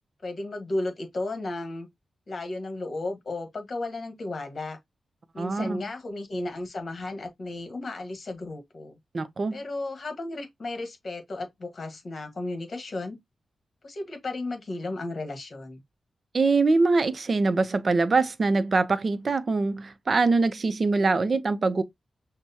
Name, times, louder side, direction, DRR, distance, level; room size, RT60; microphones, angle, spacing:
voice 1, 0.2-1.9 2.3-4.8 5.3-9.0 9.5-13.2 13.8-15.8, left 2 dB, 45° left, 1.4 m, -34 dB
voice 2, 5.4-5.8 9.1-9.6 16.3-21.8, right 3 dB, 45° right, 0.5 m, -23 dB
6.1 x 2.2 x 2.7 m
wide cardioid pair, 95°, 0 cm